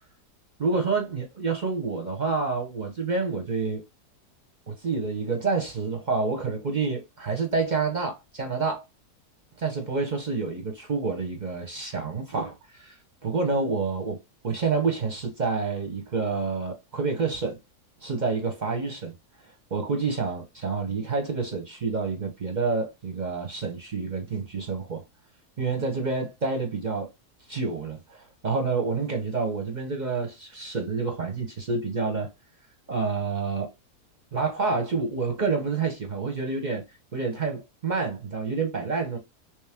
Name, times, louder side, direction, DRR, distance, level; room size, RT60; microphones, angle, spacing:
voice 1, 0.6-3.8 4.7-8.8 9.6-13.0 13.2-14.2 14.4-17.6 18.0-19.1 19.7-25.0 25.6-27.1 27.5-32.3 32.9-33.7 34.3-36.8 37.1-39.2, right 4 dB, 45° right, 0.6 m, -28 dB
3.2 x 3.1 x 3.4 m
omnidirectional pair, 1.7 m